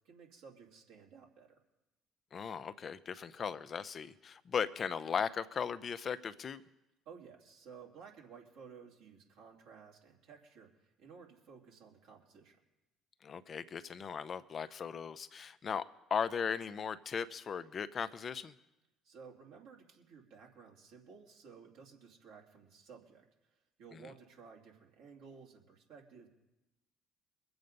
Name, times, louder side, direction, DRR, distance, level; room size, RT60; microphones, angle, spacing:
voice 1, 0.0-1.5 7.0-12.6 19.0-26.3, right 6 dB, 70° right, -1 dB, 2.7 m, -55 dB
voice 2, 2.3-6.6 13.2-18.5 23.9-24.0, left 7 dB, 45° left, 13 dB, 0.7 m, -37 dB
23.0 x 7.9 x 5.4 m, 0.97 s
hypercardioid pair, 60°, 0 cm